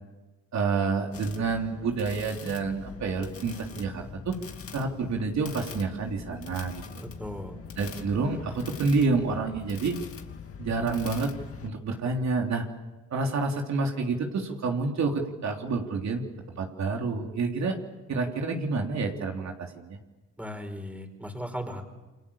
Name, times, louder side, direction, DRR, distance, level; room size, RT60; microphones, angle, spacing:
voice 1, 0.5-4.4 4.7-6.7 7.8-10.0 10.6-11.3 11.6-12.7 13.1-16.3 16.6-17.8 18.1-20.0, right 4 dB, 60° right, 1 dB, 3.5 m, -28 dB
sound 1, 1.1-11.7, left 6 dB, 45° left, 2.6 m, -42 dB
voice 2, 7.0-7.6 20.4-21.8, equal, 5° right, 5 dB, 4.7 m, -37 dB
29.0 x 25.0 x 7.2 m, 1.1 s
cardioid pair, 95°, 31 cm